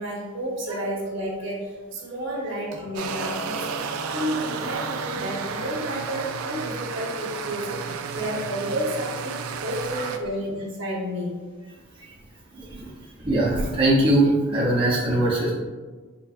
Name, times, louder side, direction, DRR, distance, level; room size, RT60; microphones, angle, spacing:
voice 1, 0.0-11.4, equal, 60° right, -3 dB, 0.9 m, -31 dB
sound 1, 2.9-10.2, right 5 dB, 80° right, 0.3 m, -32 dB
voice 2, 12.5-12.9 13.2-15.5, right 1 dB, 25° right, -7 dB, 0.5 m, -21 dB
4.0 x 3.0 x 2.4 m, 1.4 s
head